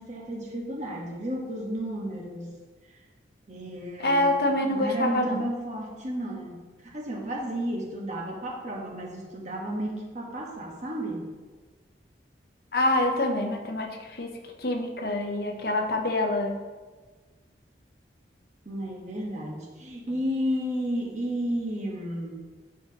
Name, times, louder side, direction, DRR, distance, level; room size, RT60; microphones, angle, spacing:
voice 1, 0.0-2.5 3.5-11.3 18.6-22.5, equal, 40° right, -1 dB, 1.3 m, -33 dB
voice 2, 4.0-5.4 12.7-14.3 14.6-16.6, left 1 dB, 55° left, 3 dB, 0.8 m, -26 dB
12.0 x 4.5 x 2.9 m, 1.3 s
head